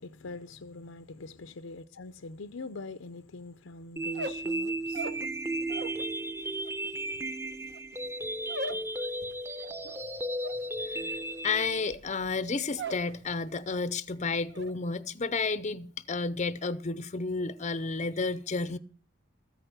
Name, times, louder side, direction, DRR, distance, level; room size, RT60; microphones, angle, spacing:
voice 1, 0.0-5.3 10.9-11.2, left 3 dB, 70° left, 0.7 m, -44 dB
sound 1, 4.0-12.0, right 1 dB, 10° right, 0.8 m, -34 dB
sound 2, 4.0-6.1 6.4-13.1 13.4-13.9 14.2-14.7, right 2 dB, 55° right, 1.1 m, -41 dB
voice 2, 11.4-18.8, left 4 dB, 35° left, 0.6 m, -31 dB
14.0 x 9.0 x 6.5 m
head